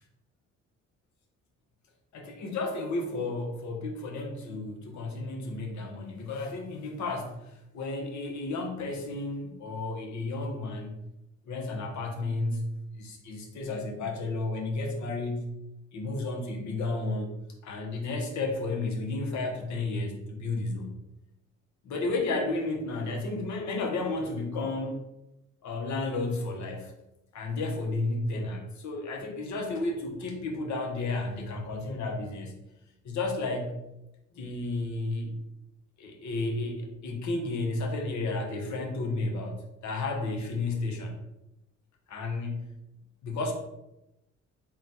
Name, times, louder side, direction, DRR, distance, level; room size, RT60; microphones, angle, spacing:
voice 1, 2.1-10.9 11.5-15.5 15.9-17.3 17.6-21.0 21.8-25.0 25.6-26.9 27.3-32.6 33.0-33.7 34.3-35.4 36.0-41.2 42.1-42.7 43.2-43.5, left 2 dB, 70° left, 2 dB, 1.0 m, -32 dB
3.9 x 2.3 x 4.1 m, 0.90 s
cardioid pair, 90°, 30 cm